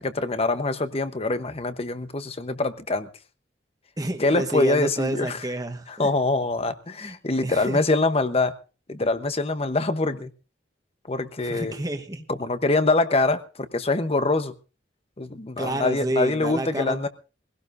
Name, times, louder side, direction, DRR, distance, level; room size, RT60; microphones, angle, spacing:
voice 1, 0.0-3.1 4.2-5.4 6.0-8.5 8.9-10.3 11.1-11.7 12.4-14.5 15.2-17.1, left 2 dB, 35° left, 1.0 m, -24 dB
voice 2, 4.0-6.1 7.0-7.8 11.4-12.2 15.6-17.1, right 1 dB, 20° right, 1.3 m, -29 dB
22.0 x 17.0 x 2.6 m
head